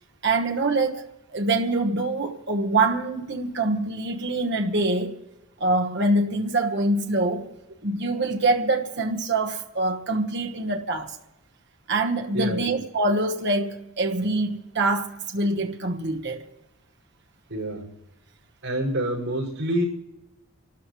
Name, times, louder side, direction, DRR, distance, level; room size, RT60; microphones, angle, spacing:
voice 1, 0.2-1.0 1.3-5.2 5.6-7.5 7.8-11.2 11.9-16.4, right 2 dB, 55° right, 1.2 m, -24 dB
voice 2, 12.3-12.7 17.5-17.9 18.6-19.8, right 1 dB, 75° right, 5.4 m, -27 dB
27.0 x 13.0 x 3.1 m
head